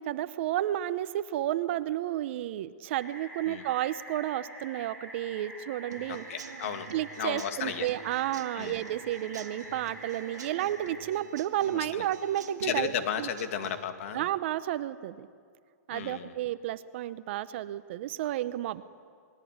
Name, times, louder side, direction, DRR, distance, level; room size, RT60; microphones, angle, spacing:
voice 1, 0.0-6.2 6.9-12.9 13.2-13.3 14.1-15.3 15.9-18.8, right 13 dB, 45° right, 14 dB, 0.9 m, -32 dB
sound 1, 3.0-11.0, equal, 15° left, 7.5 m, -46 dB
Human voice / Acoustic guitar / Drum, 5.9-13.9, right 7 dB, 80° right, 2.0 m, -47 dB
voice 2, 6.1-6.9 7.2-7.9 8.5-8.8 11.7-12.1 12.6-14.3 15.9-16.3, left 8 dB, 50° left, 7 dB, 2.4 m, -34 dB
28.5 x 21.0 x 9.6 m, 2.2 s
hypercardioid pair, 155°, 9 cm